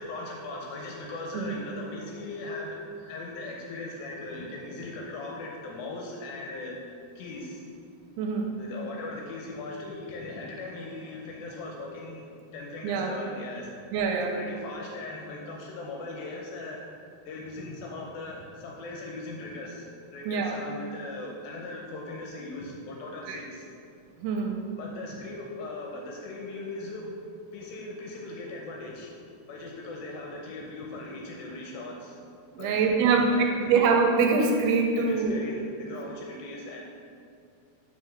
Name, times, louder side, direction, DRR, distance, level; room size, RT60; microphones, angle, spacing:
voice 1, 0.0-6.8 7.2-7.6 8.6-13.7 14.3-16.8 17.3-23.7 24.8-27.1 27.5-29.2 29.5-32.2 32.6-33.9 34.9-36.8, left 2 dB, 75° left, 0 dB, 2.2 m, -39 dB
voice 2, 8.2-8.6 12.8-13.2 13.9-14.3 20.3-20.6 23.3-23.4 24.2-24.7 32.5-33.3 33.6-35.4, right 5 dB, 80° right, 2 dB, 2.5 m, -24 dB
5.8 x 4.8 x 6.4 m, 2.3 s
omnidirectional pair, 4.7 m